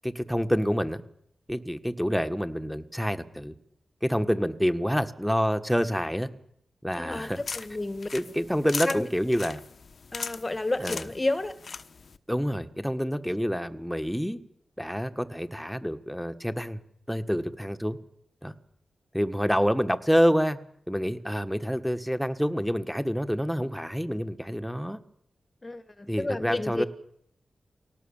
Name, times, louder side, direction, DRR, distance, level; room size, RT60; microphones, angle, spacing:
voice 1, 0.0-1.0 1.5-3.5 4.0-6.3 6.8-7.4 8.1-9.6 10.8-11.0 12.3-14.4 14.8-16.8 17.1-18.0 18.4-18.5 19.1-20.6 20.9-25.0 26.1-26.9, equal, ahead, 1.7 m, -27 dB
voice 2, 6.9-8.1 8.8-9.1 10.1-11.5 25.6-26.9, left 2 dB, 30° left, 1.4 m, -31 dB
sound 1, 7.1-12.2, left 5 dB, 65° left, 1.1 m, -39 dB
24.0 x 18.5 x 7.4 m
cardioid pair, 55°, 0 cm